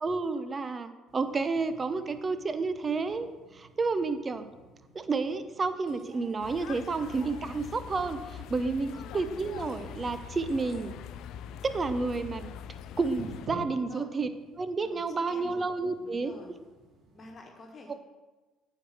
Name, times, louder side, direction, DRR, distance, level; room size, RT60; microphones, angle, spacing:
voice 1, 0.0-3.3 3.5-4.4 4.9-10.9 11.7-12.5 13.0-14.3 14.6-16.4 17.9-18.0, right 4 dB, 35° right, 11 dB, 0.8 m, -30 dB
sound 1, 1.1-17.4, right 1 dB, 55° right, 2.7 m, -52 dB
sound 2, 6.4-13.5, left 9 dB, 65° left, 0.3 m, -43 dB
voice 2, 13.7-14.1 14.8-15.6 16.0-16.5 17.1-17.9, left 2 dB, 40° left, 2 dB, 1.5 m, -48 dB
9.3 x 4.8 x 6.3 m, 1.2 s
hypercardioid pair, 55°, 0 cm